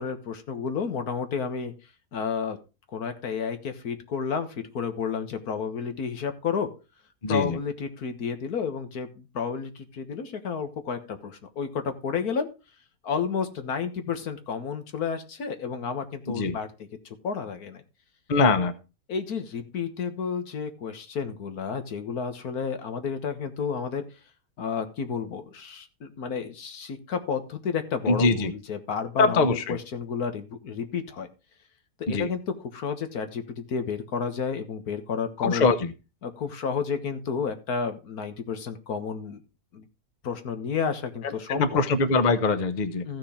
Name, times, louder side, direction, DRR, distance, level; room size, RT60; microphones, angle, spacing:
voice 1, 0.0-1.7 2.1-2.6 2.9-6.7 7.3-12.5 13.0-16.7 17.1-17.8 18.6-18.7 19.1-24.1 24.6-31.3 32.0-35.7 36.2-39.4 39.7-39.8 40.2-41.9 43.1-43.2, left 6 dB, 75° left, 8 dB, 1.8 m, -31 dB
voice 2, 7.2-7.6 16.3-16.5 18.3-18.7 28.1-28.5 29.2-29.8 32.1-32.3 35.4-35.9 41.5-43.0, left 3 dB, 35° left, 10 dB, 0.9 m, -22 dB
14.5 x 6.2 x 4.3 m, 0.30 s
omnidirectional pair, 1.6 m